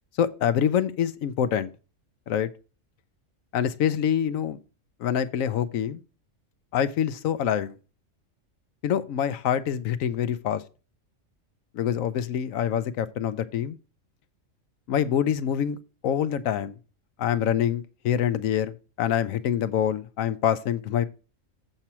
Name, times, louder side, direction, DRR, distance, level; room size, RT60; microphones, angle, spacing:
voice 1, 0.2-1.7 2.3-2.5 3.5-4.6 5.0-6.0 6.7-7.7 8.8-10.6 11.7-13.8 14.9-15.8 16.0-16.8 17.2-21.1, left 9 dB, 85° left, 1.1 m, -25 dB
7.9 x 4.3 x 5.9 m
omnidirectional pair, 1.4 m